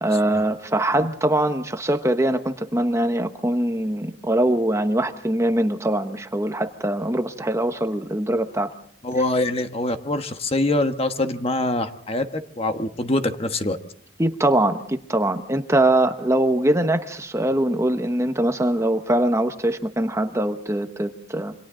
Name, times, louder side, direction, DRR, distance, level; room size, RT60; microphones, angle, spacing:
voice 1, 0.0-8.7 14.2-21.5, right 1 dB, 15° right, 8 dB, 1.1 m, -22 dB
voice 2, 9.0-13.8, left 2 dB, 30° left, 8 dB, 1.3 m, -24 dB
28.0 x 25.0 x 3.9 m, 0.63 s
head